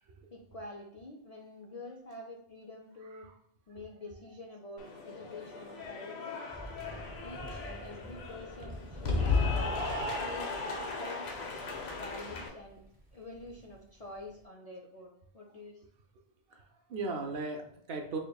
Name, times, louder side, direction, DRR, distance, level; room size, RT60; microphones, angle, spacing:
voice 1, 0.3-3.3 3.7-6.4 6.8-9.7 10.2-11.3 12.0-12.8 13.1-15.8, left 2 dB, 50° left, -1 dB, 0.4 m, -47 dB
Cheering / Applause, 4.8-12.5, left 4 dB, 75° left, 0.9 m, -35 dB
sound 1, 6.5-14.4, equal, 10° right, 0.8 m, -47 dB
voice 2, 16.5-18.2, right 3 dB, 65° right, 3 dB, 0.8 m, -38 dB
5.1 x 2.8 x 2.3 m, 0.65 s
omnidirectional pair, 1.1 m